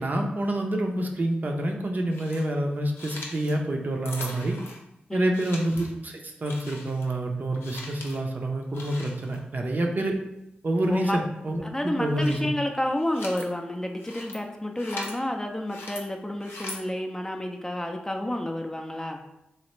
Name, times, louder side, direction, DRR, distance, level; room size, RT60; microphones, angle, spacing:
voice 1, 0.0-4.6 5.1-10.2 10.6-12.5, right 1 dB, 50° right, 2 dB, 0.5 m, -27 dB
sound 1, 2.1-2.5 2.9-3.6 4.1-4.8 5.3-5.9 6.4-7.1 7.5-8.2 8.7-9.4 10.9-11.1 11.9-12.5 12.9-13.5 14.0-14.4 14.8-15.1 15.7-16.0 16.4-16.8, left 2 dB, 85° left, 0.5 m, -40 dB
voice 2, 11.6-19.2, left 1 dB, 15° left, 3 dB, 0.4 m, -30 dB
3.2 x 2.4 x 2.9 m, 0.86 s
cardioid pair, 45°, 4 cm